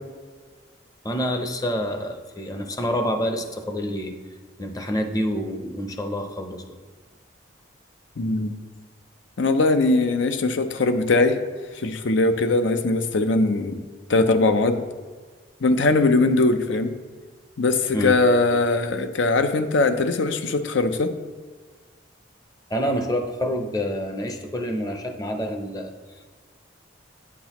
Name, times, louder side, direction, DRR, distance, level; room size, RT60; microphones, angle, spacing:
voice 1, 1.0-4.1 4.6-6.6 17.9-18.2 22.7-25.9, equal, 20° left, 4 dB, 0.6 m, -27 dB
voice 2, 8.2-8.6 9.4-11.4 11.7-13.8 14.1-14.8 15.6-16.9 17.6-21.1, left 2 dB, 75° left, 8 dB, 0.6 m, -20 dB
9.3 x 6.0 x 3.0 m, 1.5 s
head